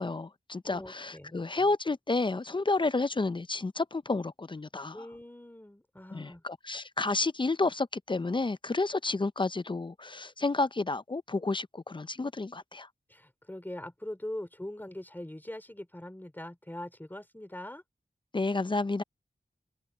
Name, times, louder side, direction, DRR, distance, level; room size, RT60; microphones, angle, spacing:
voice 1, 0.0-5.1 6.1-12.9 18.3-19.0, left 3 dB, 30° left, 0.5 m, -30 dB
voice 2, 0.6-1.4 4.9-6.4 13.1-17.8, left 1 dB, 10° left, 3.0 m, -42 dB
open air
wide cardioid pair, 60°, 16 cm